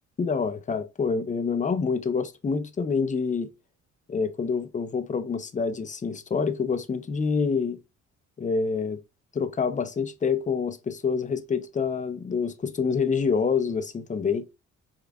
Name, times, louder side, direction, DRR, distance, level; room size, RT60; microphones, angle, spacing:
voice 1, 0.2-3.5 4.1-7.8 8.4-9.0 9.3-14.4, left 5 dB, 25° left, 0.5 m, -27 dB
5.0 x 2.3 x 2.3 m
cardioid pair, 90°, 30 cm